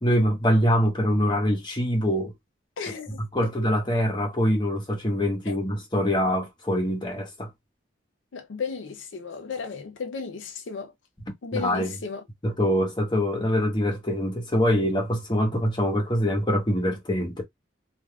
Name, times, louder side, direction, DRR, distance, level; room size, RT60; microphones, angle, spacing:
voice 1, 0.0-2.3 3.2-7.5 11.5-11.9 12.4-17.4, equal, 25° left, 1.0 m, -24 dB
voice 2, 2.8-3.5 5.5-5.6 8.3-10.9 11.4-12.2, left 5 dB, 80° left, 0.5 m, -34 dB
3.4 x 2.5 x 2.3 m
head